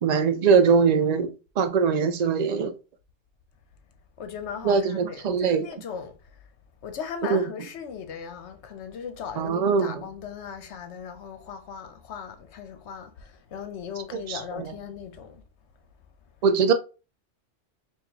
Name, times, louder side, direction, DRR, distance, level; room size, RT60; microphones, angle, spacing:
voice 1, 0.0-2.7 4.6-5.7 7.3-7.4 9.4-10.0 14.1-14.7 16.4-16.7, right 6 dB, 55° right, 0.4 m, -22 dB
voice 2, 4.2-6.1 6.8-15.4, left 7 dB, 65° left, 1.0 m, -38 dB
4.8 x 2.5 x 2.7 m
omnidirectional pair, 1.3 m